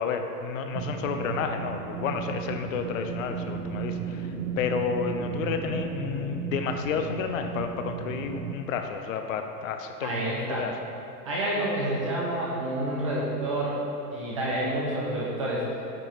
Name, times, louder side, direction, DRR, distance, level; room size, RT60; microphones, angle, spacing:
voice 1, 0.0-4.2 4.6-10.7, left 6 dB, 55° left, 6 dB, 0.6 m, -31 dB
sound 1, 0.8-8.5, right 7 dB, 75° right, 0.8 m, -34 dB
voice 2, 10.0-10.7 11.3-13.8 14.1-15.6, right 1 dB, 25° right, -5 dB, 0.3 m, -28 dB
8.7 x 3.0 x 4.3 m, 2.7 s
hypercardioid pair, 130°, 48 cm